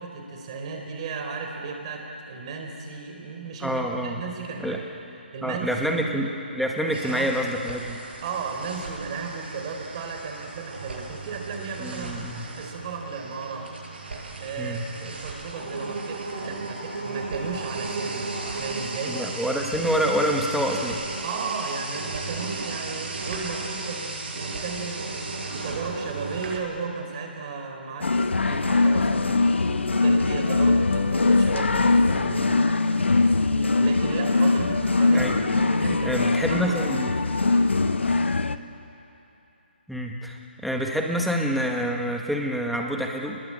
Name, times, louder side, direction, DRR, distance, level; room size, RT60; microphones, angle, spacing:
voice 1, 0.0-4.8 5.3-6.3 6.8-7.3 8.2-12.3 12.6-13.7 14.4-19.2 21.2-29.5 29.9-32.9 33.8-36.2 36.5-37.1, right 4 dB, 30° right, 3 dB, 4.2 m, -35 dB
voice 2, 3.6-4.2 4.6-4.8 5.4-8.0 11.8-12.4 14.6-14.8 19.1-21.0 35.1-35.5 36.0-37.1 39.9-43.4, equal, ahead, 0 dB, 1.5 m, -27 dB
sound 1, 6.9-26.6, right 3 dB, 65° right, 7.0 m, -35 dB
sound 2, 28.0-38.6, left 3 dB, 85° left, 1.2 m, -22 dB
29.0 x 21.0 x 8.7 m, 2.8 s
hypercardioid pair, 160°, 6 cm